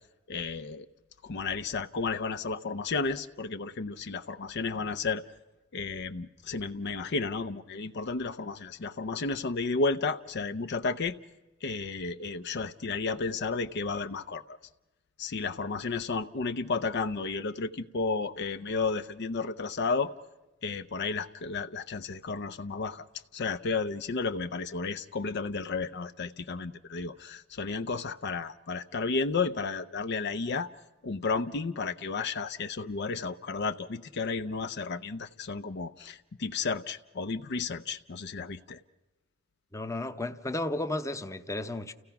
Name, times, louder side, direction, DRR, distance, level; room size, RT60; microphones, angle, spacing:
voice 1, 0.3-0.9 1.2-5.2 5.7-11.1 11.6-14.6 15.2-20.1 20.6-23.0 23.3-30.7 31.0-38.8, left 4 dB, 55° left, 0.6 m, -32 dB
voice 2, 39.7-41.9, left 2 dB, 15° left, 0.8 m, -33 dB
30.0 x 16.0 x 5.8 m
head